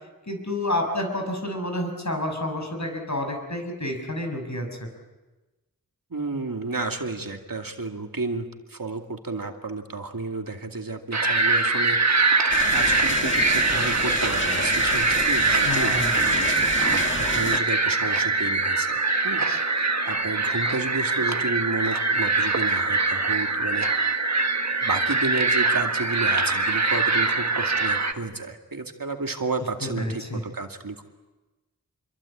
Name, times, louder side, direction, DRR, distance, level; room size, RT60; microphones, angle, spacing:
voice 1, 0.3-4.9 15.5-16.1 29.8-30.4, left 1 dB, 50° left, 3 dB, 6.6 m, -29 dB
voice 2, 6.1-12.4 12.7-19.0 19.2-19.4 19.7-23.9 24.8-31.0, right 3 dB, 70° right, 4 dB, 2.4 m, -32 dB
sound 1, 11.1-28.1, right 3 dB, 50° right, 1.6 m, -23 dB
sound 2, 12.5-17.6, left 2 dB, 35° left, 1.6 m, -30 dB
26.5 x 23.0 x 8.7 m, 1.1 s
wide cardioid pair, 50°, 36 cm